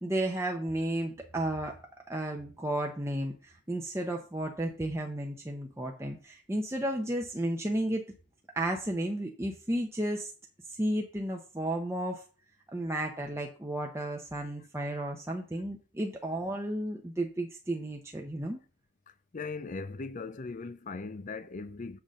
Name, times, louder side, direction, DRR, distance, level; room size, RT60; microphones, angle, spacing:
voice 1, 0.0-1.8 2.1-8.1 8.5-10.3 10.8-12.2 12.7-18.6, right 1 dB, 10° right, 0.7 m, -33 dB
voice 2, 19.3-22.0, left 4 dB, 35° left, 0.5 m, -39 dB
7.0 x 3.8 x 6.4 m
head